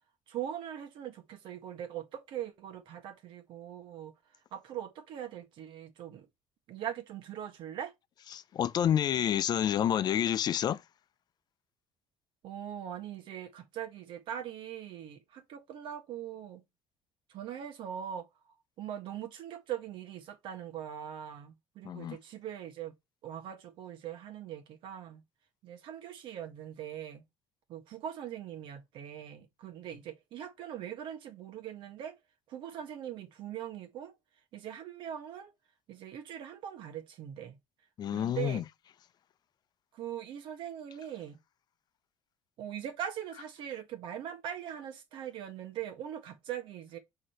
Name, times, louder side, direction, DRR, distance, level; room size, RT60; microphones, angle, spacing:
voice 1, 0.3-4.1 4.5-6.3 6.7-7.9 12.4-16.6 17.3-18.3 18.8-22.9 23.2-25.2 25.6-27.2 27.7-32.2 32.5-34.1 34.5-35.5 35.9-37.6 38.1-38.6 39.9-41.4 42.6-47.0, right 10 dB, 70° right, 1.5 m, -41 dB
voice 2, 8.3-10.8 21.8-22.2 38.0-38.6, left 10 dB, 55° left, 0.5 m, -29 dB
6.2 x 3.8 x 4.4 m
supercardioid pair, 90°, 9 cm